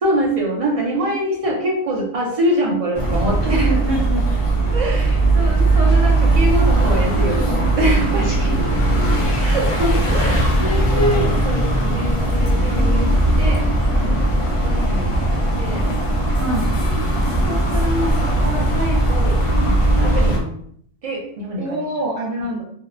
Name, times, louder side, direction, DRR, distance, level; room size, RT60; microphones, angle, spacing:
voice 1, 0.0-3.7 4.7-8.3 9.1-13.7 13.9-15.2 15.6-15.9 16.9-17.1 17.5-20.6 21.0-21.8, right 1 dB, 40° right, -2 dB, 0.5 m, -24 dB
sound 1, 2.9-20.4, right 1 dB, 55° left, 0.3 m, -18 dB
voice 2, 3.4-4.2 5.4-5.6 8.1-8.7 16.4-16.7 21.6-22.6, right 1 dB, 65° right, -3 dB, 0.9 m, -26 dB
2.7 x 2.0 x 2.4 m, 0.63 s
omnidirectional pair, 1.2 m